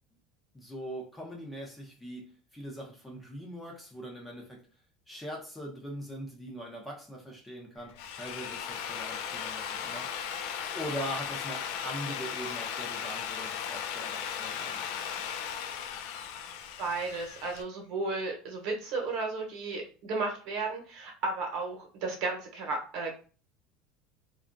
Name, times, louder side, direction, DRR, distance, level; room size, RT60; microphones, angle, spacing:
voice 1, 0.5-4.7 5.1-10.1 10.7-15.1, equal, 10° left, -1 dB, 0.7 m, -41 dB
Drill, 7.8-17.6, left 8 dB, 70° left, 0.3 m, -37 dB
voice 2, 16.8-23.1, right 3 dB, 60° right, 0 dB, 1.0 m, -34 dB
2.7 x 2.3 x 2.6 m, 0.37 s
cardioid pair, 145°, 0 cm